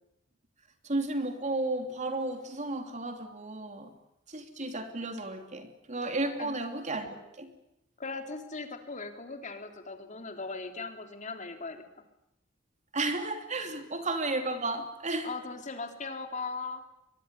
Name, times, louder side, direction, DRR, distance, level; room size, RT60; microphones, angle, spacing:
voice 1, 0.8-3.9 4.3-7.5 12.9-15.3, right 2 dB, 40° right, 6 dB, 3.1 m, -33 dB
voice 2, 8.0-11.8 15.2-16.8, left 4 dB, 40° left, 5 dB, 3.5 m, -39 dB
24.5 x 22.5 x 9.9 m, 0.85 s
head